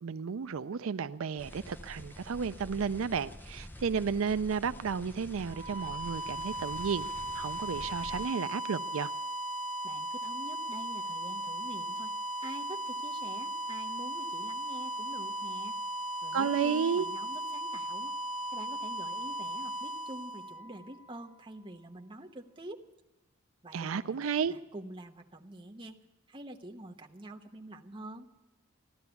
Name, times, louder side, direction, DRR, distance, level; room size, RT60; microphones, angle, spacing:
voice 1, 0.0-7.1 7.3-9.1 16.3-17.1 23.7-24.5, right 6 dB, 80° right, 0.4 m, -32 dB
sound 1, 1.4-8.3, equal, 10° left, 0.6 m, -47 dB
sound 2, 5.4-21.2, right 1 dB, 90° left, 0.8 m, -37 dB
voice 2, 9.8-12.1 12.4-15.8 16.2-18.1 18.5-22.8 23.6-26.0 26.3-28.3, right 1 dB, 25° right, 1.0 m, -46 dB
15.5 x 12.0 x 7.0 m
head